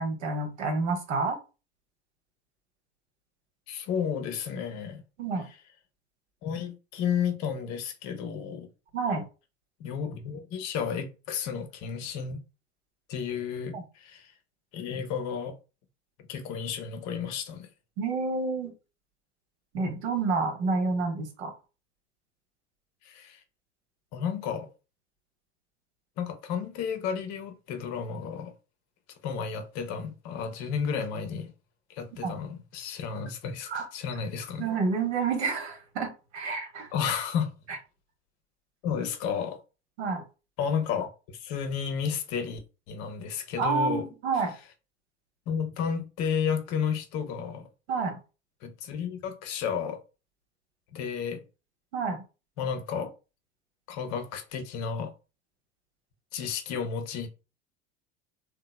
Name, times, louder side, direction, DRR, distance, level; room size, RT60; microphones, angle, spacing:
voice 1, 0.0-1.4 5.2-5.5 8.9-9.3 13.7-13.8 18.0-18.7 19.7-21.5 32.2-32.4 33.7-33.8 34.6-36.9 40.0-40.2 43.6-44.5 47.9-48.2 51.9-52.2, right 4 dB, 75° right, 0.9 m, -29 dB
voice 2, 3.7-5.0 6.4-8.7 9.8-12.4 13.1-14.3 14.7-15.6 16.3-17.7 23.0-23.4 24.1-24.7 26.2-28.5 29.2-31.5 31.9-34.7 36.9-37.5 38.8-39.6 40.6-42.6 42.9-44.1 45.5-47.7 48.6-50.0 50.9-51.4 52.6-53.1 53.9-55.1 56.3-57.3, left 7 dB, 50° left, 0.7 m, -32 dB
2.9 x 2.2 x 2.2 m
figure-of-eight pair, 75°, 35 cm